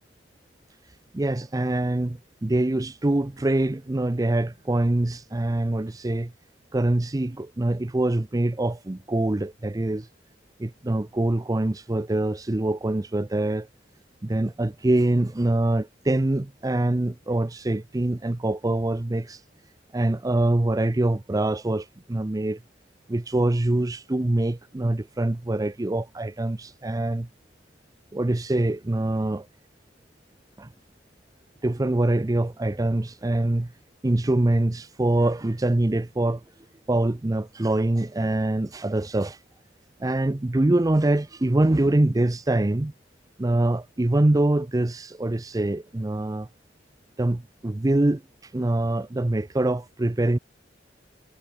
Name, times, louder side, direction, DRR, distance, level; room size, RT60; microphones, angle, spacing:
voice 1, 1.1-6.3 6.7-10.1 10.6-13.7 14.2-19.4 19.9-22.6 23.1-27.3 28.1-29.5 30.6-30.7 31.6-33.7 34.0-36.4 36.9-39.4 40.0-42.9 43.4-46.5 47.2-50.4, right 1 dB, 20° right, 0.5 m, -24 dB
head